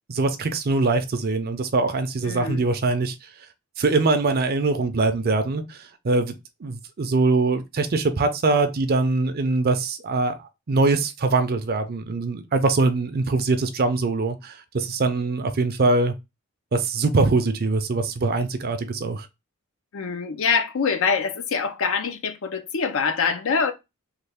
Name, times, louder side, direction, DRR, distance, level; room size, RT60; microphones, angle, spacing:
voice 1, 0.1-3.1 3.8-5.8 6.0-6.3 6.6-10.3 10.7-16.1 16.7-19.3, right 3 dB, 45° right, 0.5 m, -22 dB
voice 2, 2.2-2.6 19.9-23.7, left 5 dB, 65° left, 0.6 m, -24 dB
3.2 x 2.3 x 3.4 m
head